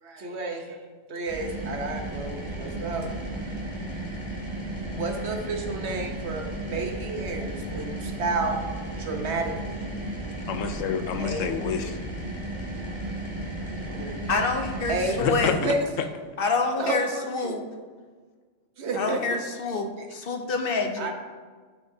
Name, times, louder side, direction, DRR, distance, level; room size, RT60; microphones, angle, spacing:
voice 1, 0.1-0.8 1.1-3.1 4.9-8.6 9.0-9.9 11.2-11.5 13.9-14.4 14.9-15.3 15.6-15.8 16.8-17.6 18.8-19.2 20.0-20.1 21.0-21.1, right 3 dB, 65° right, 1.2 m, -31 dB
sound 1, 1.3-15.5, right 1 dB, 20° right, 2.2 m, -34 dB
voice 2, 10.5-12.0 15.2-15.7, left 7 dB, 85° left, 1.0 m, -28 dB
voice 3, 14.3-15.6 16.4-17.6 19.0-21.1, left 3 dB, 55° left, 0.8 m, -27 dB
12.0 x 5.9 x 2.7 m
omnidirectional pair, 1.3 m